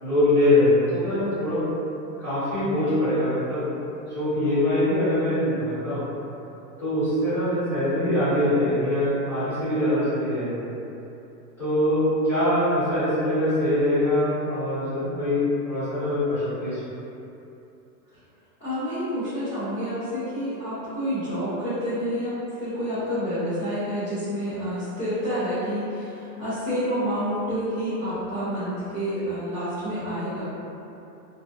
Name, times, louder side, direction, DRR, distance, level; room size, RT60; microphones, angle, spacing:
voice 1, 0.0-1.6 2.2-3.6 4.1-6.1 6.8-10.5 11.6-15.4 15.7-16.8, left 1 dB, 5° left, -19 dB, 1.1 m, -23 dB
voice 2, 18.6-22.3 22.6-30.4, equal, 25° left, -21 dB, 0.3 m, -28 dB
2.6 x 2.2 x 2.3 m, 2.9 s
supercardioid pair, 175°, 48 cm